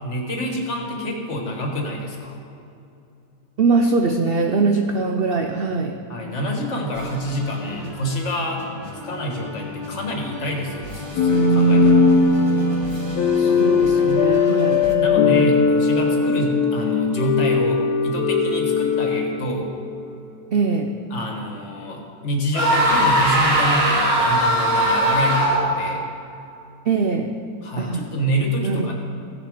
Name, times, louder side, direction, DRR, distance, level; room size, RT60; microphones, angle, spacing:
voice 1, 0.0-2.4 6.1-8.6 8.9-12.1 15.0-19.7 21.1-26.0 27.6-28.9, equal, 45° left, 1 dB, 1.6 m, -27 dB
voice 2, 3.6-6.0 13.2-14.8 20.5-20.9 26.9-27.3 27.8-28.1 28.6-28.9, right 4 dB, 75° right, 4 dB, 0.5 m, -22 dB
sound 1, 6.9-14.9, left 1 dB, 20° right, 0.8 m, -35 dB
sound 2, 11.2-20.1, left 4 dB, 85° left, 1.3 m, -19 dB
sound 3, 22.5-25.9, right 1 dB, 40° right, 1.8 m, -19 dB
15.5 x 6.8 x 5.0 m, 2.7 s
omnidirectional pair, 1.7 m